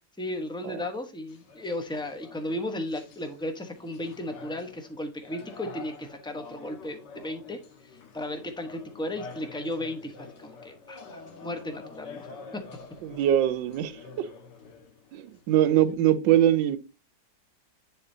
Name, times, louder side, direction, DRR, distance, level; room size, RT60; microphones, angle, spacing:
voice 1, 0.2-12.3 12.5-12.6, left 1 dB, 5° left, 0.4 m, -35 dB
sound 1, 1.3-15.9, left 4 dB, 65° left, 1.8 m, -47 dB
voice 2, 13.0-14.3 15.1-16.8, right 11 dB, 80° right, 1.4 m, -23 dB
10.0 x 4.2 x 2.7 m
omnidirectional pair, 2.0 m